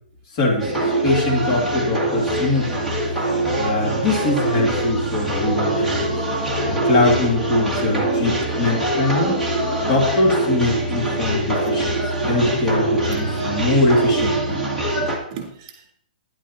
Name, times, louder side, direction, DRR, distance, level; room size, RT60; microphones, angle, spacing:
voice 1, 0.3-2.9 3.6-6.1 6.4-9.4 9.9-11.9 12.3-14.6, left 2 dB, 35° left, -2 dB, 2.5 m, -22 dB
sound 1, 0.6-15.2, right 1 dB, 5° left, 1.9 m, -23 dB
voice 2, 14.8-15.9, right 7 dB, 35° right, 0 dB, 3.6 m, -41 dB
11.0 x 10.5 x 2.9 m, 0.66 s
hypercardioid pair, 155°, 5 cm